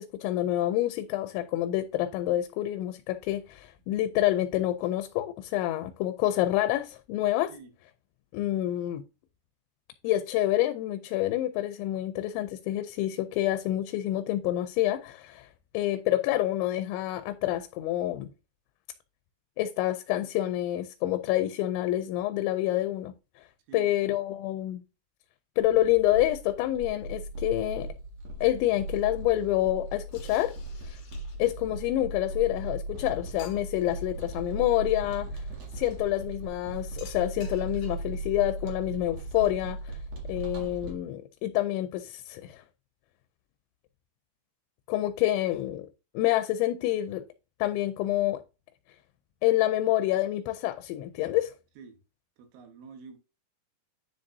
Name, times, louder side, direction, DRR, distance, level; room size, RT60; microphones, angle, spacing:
voice 1, 0.0-7.5 8.3-9.0 10.0-15.5 15.7-18.3 19.6-23.1 23.7-24.8 25.6-27.9 28.4-30.5 30.9-31.0 31.4-35.3 35.7-39.8 40.3-42.6 44.9-45.9 46.1-47.2 47.6-48.4 49.4-51.5, left 14 dB, 85° left, 2.9 m, -27 dB
voice 2, 23.7-24.1 51.8-52.0 52.4-53.2, right 5 dB, 85° right, 3.8 m, -48 dB
sound 1, 25.6-40.9, right 1 dB, 50° right, 2.2 m, -38 dB
sound 2, 30.1-31.6 32.5-32.6 32.9-33.0 33.4-33.9 35.7-36.0 37.0-38.2, left 6 dB, 45° left, 2.4 m, -52 dB
9.9 x 5.3 x 2.6 m
omnidirectional pair, 5.2 m